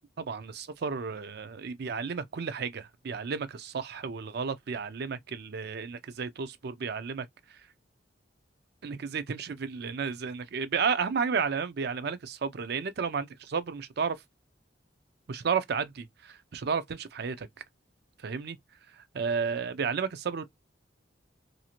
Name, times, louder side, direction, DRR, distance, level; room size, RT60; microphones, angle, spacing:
voice 1, 0.2-7.6 8.8-14.2 15.3-17.5 18.2-18.6 19.0-20.4, right 5 dB, 60° right, 0.5 m, -32 dB
2.6 x 2.4 x 2.8 m
head